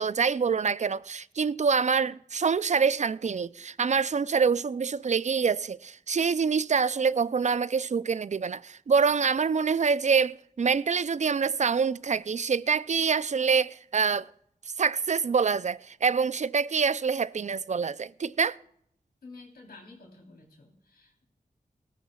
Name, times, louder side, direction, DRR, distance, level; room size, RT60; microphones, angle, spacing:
voice 1, 0.0-14.3 14.7-18.6, right 5 dB, 50° right, 0.4 m, -26 dB
voice 2, 19.2-21.2, left 3 dB, 90° left, 3.5 m, -50 dB
18.5 x 14.0 x 2.3 m
cardioid pair, 45°, 15 cm